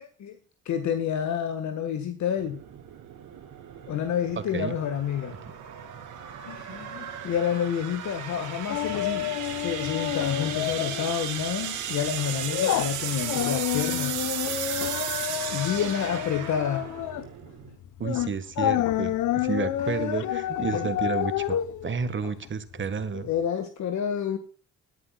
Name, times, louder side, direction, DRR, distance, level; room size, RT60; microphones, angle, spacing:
voice 1, 0.6-2.6 3.9-5.4 6.4-14.2 15.5-16.9 19.8-20.4 20.7-20.9 23.1-24.4, left 8 dB, 70° left, 8 dB, 1.7 m, -29 dB
sound 1, 2.3-17.8, right 9 dB, 85° right, 2.8 m, -35 dB
sound 2, 8.7-11.1 11.4-11.6 12.1-23.0 23.4-23.5, left 13 dB, 90° left, 0.9 m, -29 dB
voice 2, 18.0-23.3, right 6 dB, 40° right, 12 dB, 1.6 m, -31 dB
20.5 x 11.0 x 2.4 m, 0.38 s
cardioid pair, 90°, 30 cm